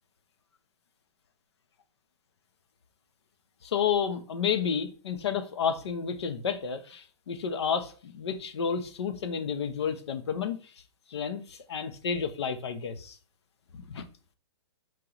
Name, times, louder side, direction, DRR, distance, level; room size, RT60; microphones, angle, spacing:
voice 1, 3.6-10.7 11.1-13.2 13.7-14.0, left 7 dB, 70° left, 0.7 m, -31 dB
4.6 x 3.0 x 3.8 m
hypercardioid pair, 180°, 14 cm